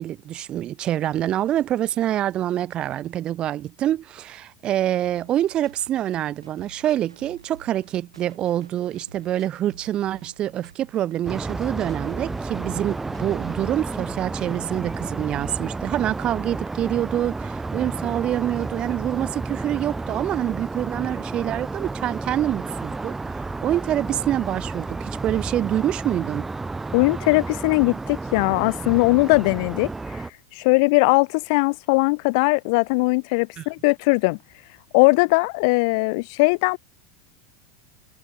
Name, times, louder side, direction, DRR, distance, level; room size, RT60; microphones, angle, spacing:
voice 1, 0.0-26.5 33.6-33.7, right 12 dB, 35° right, 1.5 m, -26 dB
sound 1, 5.0-15.0, right 5 dB, 80° right, 6.1 m, -51 dB
sound 2, 11.3-30.3, right 3 dB, 10° right, 0.8 m, -31 dB
voice 2, 26.9-30.2 30.5-34.4 34.9-36.8, left 29 dB, 50° left, 0.4 m, -20 dB
figure-of-eight pair, 80°, 3 cm